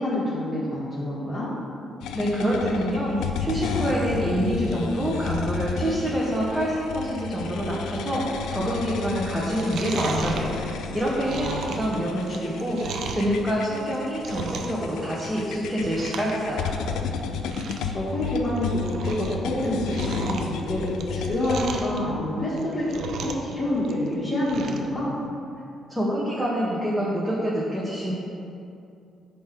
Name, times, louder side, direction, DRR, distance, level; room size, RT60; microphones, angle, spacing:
voice 1, 0.0-1.5 11.3-11.5 17.9-25.2, left 1 dB, 35° left, -10 dB, 1.9 m, -27 dB
sound 1, 2.0-21.9, left 6 dB, 85° left, 0.5 m, -33 dB
voice 2, 2.1-16.7 25.9-28.1, equal, 10° right, -6 dB, 1.4 m, -26 dB
Chewing mastication, 9.4-13.3 13.8-14.8 15.1-15.5 15.8-16.3 16.6-16.7 17.1-17.2 17.4-17.9 18.3-19.3 19.6-22.0 22.5-23.5 23.8-24.9 25.2-25.3, right 5 dB, 75° right, 0.6 m, -35 dB
9.5 x 3.2 x 6.1 m, 2.6 s
cardioid pair, 90°, 0 cm